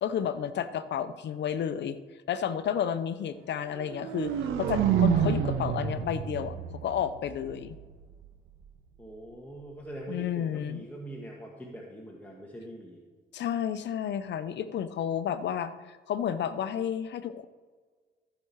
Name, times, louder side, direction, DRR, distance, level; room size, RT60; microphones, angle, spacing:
voice 1, 0.0-2.0 2.3-4.3 4.6-6.5 6.8-7.8 10.1-10.8 13.3-17.4, left 9 dB, 60° left, 13 dB, 0.7 m, -31 dB
sound 1, 3.8-7.8, right 7 dB, 85° right, 1.1 m, -28 dB
voice 2, 9.0-13.0, right 1 dB, 10° left, -2 dB, 1.5 m, -43 dB
14.5 x 6.1 x 4.7 m, 1.5 s
cardioid pair, 90°, 20 cm